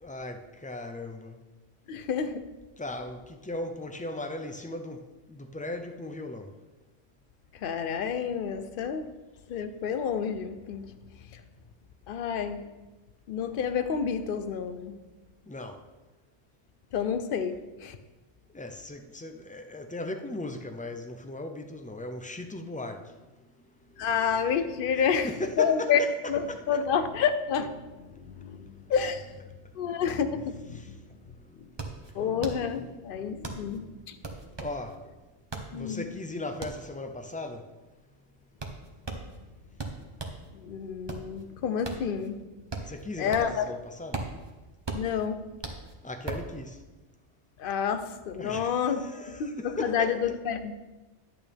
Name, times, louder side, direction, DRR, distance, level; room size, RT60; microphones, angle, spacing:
voice 1, 0.0-1.4 2.8-6.5 15.5-15.8 18.5-23.2 23.9-24.0 25.2-26.6 28.1-28.9 29.6-30.0 30.7-32.2 33.2-35.2 35.7-37.7 42.8-44.3 46.0-46.8 48.4-50.1, left 2 dB, 15° left, 0.3 m, -38 dB
voice 2, 1.9-2.4 7.6-9.1 9.5-10.8 11.3-11.4 12.1-12.7 13.3-14.9 16.9-18.0 24.0-26.0 26.3-29.3 29.8-31.0 32.1-34.2 35.7-36.1 40.5-42.4 43.2-43.7 44.9-45.4 47.6-50.7, left 7 dB, 55° left, 0.8 m, -29 dB
sound 1, 31.4-40.5 40.9-43.7 43.9-46.5, right 3 dB, 25° right, 0.9 m, -39 dB
11.0 x 8.7 x 3.5 m
omnidirectional pair, 1.2 m